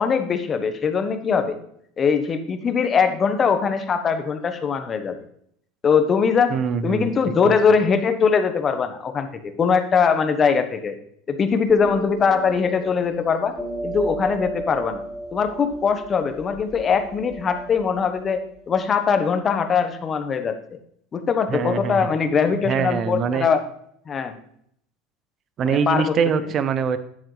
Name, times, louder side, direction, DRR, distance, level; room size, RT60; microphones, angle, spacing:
voice 1, 0.0-1.6 2.0-5.2 5.8-6.5 6.8-11.0 11.3-13.5 13.8-15.0 15.3-18.4 18.7-20.6 21.1-23.6 24.1-24.4 25.6-26.2, left 6 dB, 35° left, 8 dB, 1.1 m, -21 dB
voice 2, 6.5-7.6 21.5-22.1 22.6-23.5 25.6-27.0, right 6 dB, 40° right, 12 dB, 0.8 m, -23 dB
sound 1, 11.7-18.8, right 1 dB, ahead, 4.2 m, -34 dB
9.7 x 7.6 x 3.3 m, 0.68 s
supercardioid pair, 95°, 0 cm